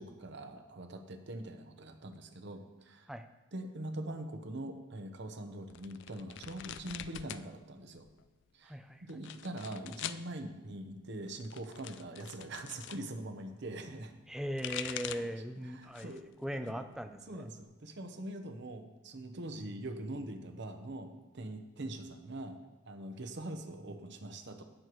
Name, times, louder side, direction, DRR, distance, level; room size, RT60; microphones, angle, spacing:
voice 1, 0.0-3.1 3.5-8.0 8.5-8.8 9.1-14.2 15.0-15.3 15.6-16.3 16.6-16.9 17.3-22.6 22.9-24.6, right 1 dB, 60° right, 6 dB, 0.9 m, -43 dB
sound 1, 5.7-7.5 7.8-8.4 9.1-10.2 11.3-13.0 14.3-15.4 15.8-16.3 16.7-17.6, left 11 dB, 60° left, 0.3 m, -44 dB
voice 2, 8.6-9.0 14.3-17.5, equal, 5° right, 8 dB, 0.4 m, -39 dB
17.5 x 6.6 x 3.1 m, 1.1 s
head